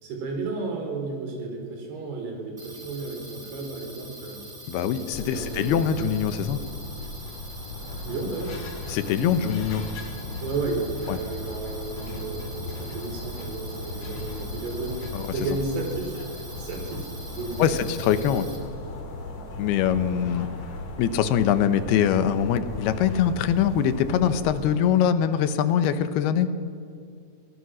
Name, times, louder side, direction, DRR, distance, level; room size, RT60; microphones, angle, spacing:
voice 1, 0.0-4.4 5.3-6.0 8.1-8.5 10.4-15.0 15.3-16.2 16.6-17.8, right 3 dB, 85° right, 2 dB, 5.7 m, -32 dB
sound 1, 2.6-18.6, right 2 dB, 15° right, 2.7 m, -44 dB
voice 2, 4.7-6.6 8.9-9.8 11.1-11.2 15.1-15.3 17.6-18.5 19.6-20.5 21.0-26.5, left 9 dB, 85° left, 11 dB, 2.9 m, -23 dB
sound 2, 5.1-24.8, left 3 dB, 50° left, 2.5 m, -37 dB
23.5 x 18.0 x 6.3 m, 2.4 s
omnidirectional pair, 4.5 m